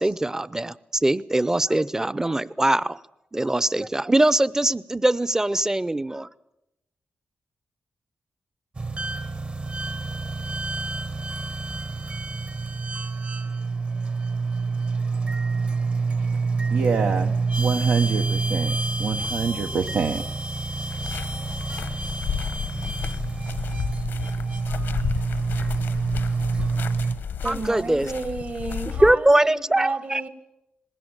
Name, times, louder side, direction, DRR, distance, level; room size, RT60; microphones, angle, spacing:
voice 1, 0.0-3.0 3.3-6.3 27.4-28.1 29.0-30.2, right 1 dB, 15° right, 19 dB, 0.7 m, -22 dB
sound 1, 8.8-27.1, right 4 dB, 40° right, 1.3 m, -27 dB
voice 2, 16.7-20.2, right 5 dB, 80° right, 4 dB, 1.0 m, -26 dB
sound 2, 20.9-29.2, left 7 dB, 90° left, 1.1 m, -32 dB
voice 3, 27.4-30.3, right 3 dB, 55° right, 10 dB, 2.3 m, -32 dB
20.0 x 17.5 x 8.9 m, 0.90 s
cardioid pair, 75°, 3 cm